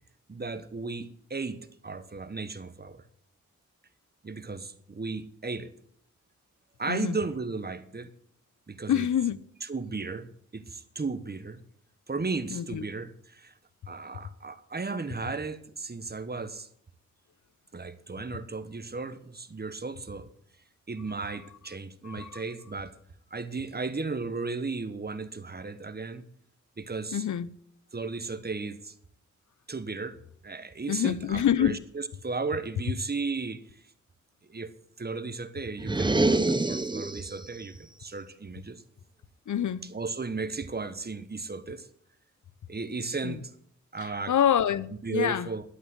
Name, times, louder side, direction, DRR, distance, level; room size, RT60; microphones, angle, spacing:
voice 1, 0.3-3.0 4.2-5.7 6.8-8.1 8.7-9.1 9.7-11.6 12.1-13.5 13.9-16.7 17.7-20.3 20.9-22.9 23.3-26.2 26.8-27.2 27.9-28.9 29.7-30.2 30.4-33.6 34.5-34.7 35.0-38.8 39.9-41.9 42.7-43.4 43.9-44.3 45.0-45.6, right 4 dB, 30° right, 1.3 m, -35 dB
voice 2, 8.9-9.4 12.5-12.8 22.0-22.4 27.1-27.5 30.9-31.8 39.5-39.8 43.2-43.4 44.0-45.5, left 9 dB, 75° left, 0.7 m, -27 dB
sound 1, 35.8-37.4, right 2 dB, 15° right, 0.8 m, -26 dB
12.0 x 8.3 x 8.1 m
cardioid pair, 70°, 30 cm